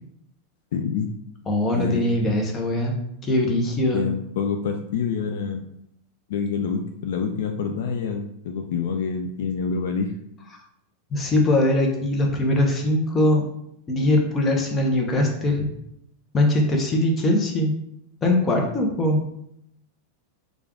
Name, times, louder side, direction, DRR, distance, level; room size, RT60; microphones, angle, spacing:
voice 1, 0.7-1.1 1.7-2.1 3.9-5.7 6.3-10.1, left 5 dB, 70° left, 5 dB, 0.3 m, -27 dB
voice 2, 1.5-2.9 3.2-4.0 11.1-13.4 13.9-15.7 16.3-17.7 18.2-19.2, left 1 dB, 25° left, 1 dB, 0.9 m, -21 dB
3.3 x 2.5 x 3.6 m, 0.74 s
hypercardioid pair, 105°, 0 cm